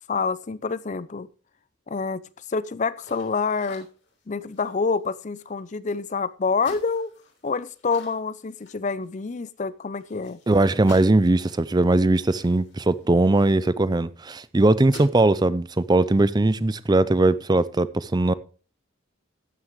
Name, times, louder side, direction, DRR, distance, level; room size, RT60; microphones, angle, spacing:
voice 1, 0.1-1.3 1.9-2.2 2.5-3.9 4.3-7.1 7.4-10.4, left 4 dB, 35° left, 0.5 m, -27 dB
sound 1, 3.0-6.1 6.6-9.3 9.6-9.7 10.0-13.9 14.3-14.5 14.8-15.3, left 2 dB, 60° left, 3.4 m, -49 dB
voice 2, 10.5-18.3, right 2 dB, 20° right, 0.4 m, -20 dB
13.0 x 9.6 x 3.1 m
head